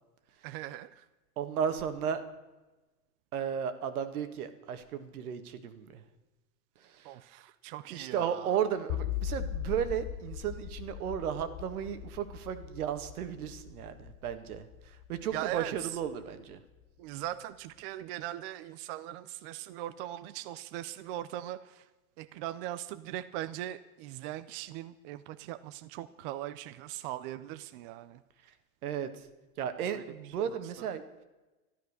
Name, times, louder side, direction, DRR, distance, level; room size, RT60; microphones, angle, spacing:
voice 1, 0.4-1.0 7.0-8.5 15.3-15.9 17.0-21.8 22.2-28.2 29.9-30.0, right 13 dB, 40° right, 13 dB, 0.5 m, -40 dB
voice 2, 1.4-2.2 3.3-6.0 6.8-7.2 7.9-16.6 28.8-29.3 29.6-31.0, right 8 dB, 75° right, 10 dB, 1.8 m, -34 dB
sound 1, 8.9-16.1, left 10 dB, 40° left, 0.8 m, -39 dB
13.0 x 12.0 x 6.6 m, 1.1 s
supercardioid pair, 145°, 44 cm